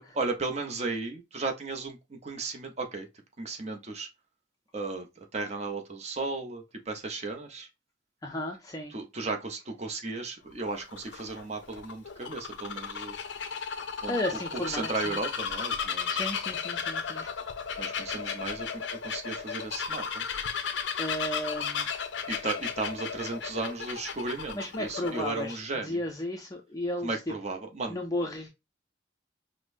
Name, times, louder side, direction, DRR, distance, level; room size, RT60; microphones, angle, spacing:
voice 1, 0.0-3.1 3.4-4.1 4.7-7.7 8.9-13.2 14.0-14.2 14.6-16.3 17.8-20.3 22.3-26.0 27.0-28.0, right 3 dB, 35° right, 0.8 m, -35 dB
voice 2, 8.2-9.0 14.0-15.2 16.1-17.3 21.0-21.9 24.5-27.2 27.9-28.5, left 1 dB, 20° left, 0.4 m, -34 dB
Bird vocalization bird call bird song, 10.5-25.5, left 6 dB, 85° left, 0.5 m, -34 dB
5.1 x 2.1 x 2.5 m
head